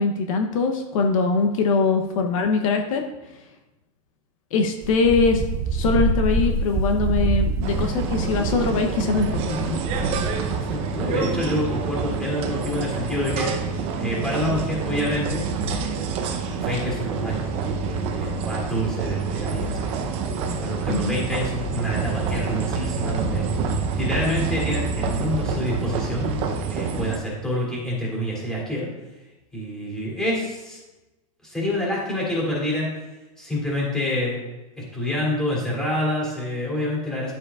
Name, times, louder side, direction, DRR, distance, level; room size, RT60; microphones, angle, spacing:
voice 1, 0.0-3.0 4.5-5.4 5.7-9.8 20.9-21.2, left 4 dB, 60° left, 4 dB, 0.8 m, -22 dB
Wind, 4.8-10.7, right 3 dB, 15° right, 0.4 m, -26 dB
sound 1, 7.6-27.2, right 5 dB, 30° right, 0.8 m, -27 dB
voice 2, 10.5-15.4 16.5-20.1 20.6-23.5 24.0-26.3 26.7-28.9 29.5-30.8 31.4-32.9 33.4-34.4 34.9-37.3, left 1 dB, 5° left, -6 dB, 2.8 m, -27 dB
11.0 x 7.2 x 2.4 m, 1.1 s
supercardioid pair, 155°, 19 cm